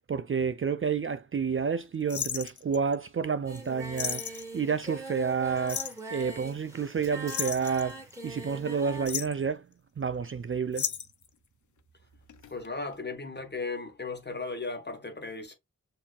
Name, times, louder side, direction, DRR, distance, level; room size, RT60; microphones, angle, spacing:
voice 1, 0.1-9.7 10.0-10.9, right 6 dB, 40° right, 0.4 m, -30 dB
sound 1, 2.1-2.9 3.6-3.7 4.0-4.5 5.7-6.0 7.3-8.3 8.9-9.4 10.7-11.3 12.3-12.7 12.9-13.0, left 9 dB, 65° left, 0.5 m, -34 dB
Singing, 3.4-9.1, right 2 dB, 10° right, 2.0 m, -42 dB
voice 2, 12.5-15.5, left 3 dB, 30° left, 1.2 m, -36 dB
6.6 x 2.8 x 2.3 m
wide cardioid pair, 95°, 32 cm